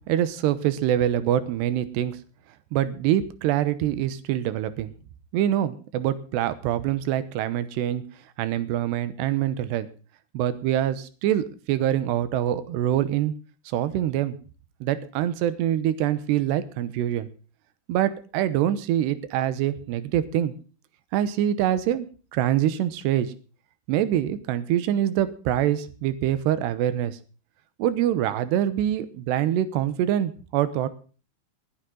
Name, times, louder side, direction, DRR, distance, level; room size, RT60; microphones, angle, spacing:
voice 1, 0.1-2.2 2.7-4.9 5.3-8.0 8.4-9.9 10.3-13.3 13.7-14.4 14.8-17.3 17.9-20.5 21.1-23.3 23.9-27.2 27.8-30.9, right 11 dB, 80° right, 13 dB, 3.1 m, -25 dB
20.5 x 10.5 x 3.8 m, 0.37 s
omnidirectional pair, 4.8 m